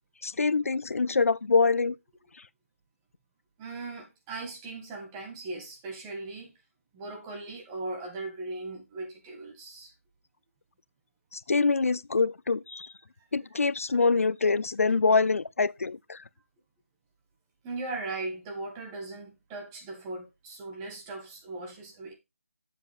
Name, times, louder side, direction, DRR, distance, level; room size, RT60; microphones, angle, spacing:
voice 1, 0.2-2.0 11.3-12.9 13.3-16.2, left 4 dB, 85° left, 0.4 m, -25 dB
voice 2, 3.6-6.5 6.9-9.9 17.6-22.1, right 2 dB, 15° right, 1.9 m, -38 dB
7.4 x 7.3 x 3.6 m
figure-of-eight pair, 165°, 7 cm